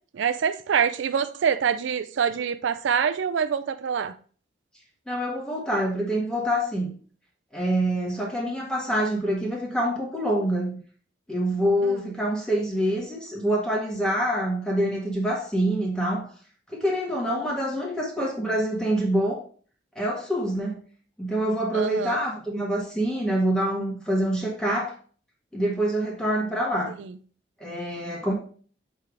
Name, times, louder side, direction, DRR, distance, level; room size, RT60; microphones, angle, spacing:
voice 1, 0.1-4.1 11.8-12.0 21.7-22.2, right 7 dB, 80° right, 0.4 m, -25 dB
voice 2, 5.1-6.9 7.5-10.8 11.3-16.3 16.7-19.4 19.9-20.8 21.2-24.9 25.5-26.9 27.6-28.3, right 1 dB, 5° left, 1.6 m, -26 dB
6.8 x 3.4 x 4.7 m
head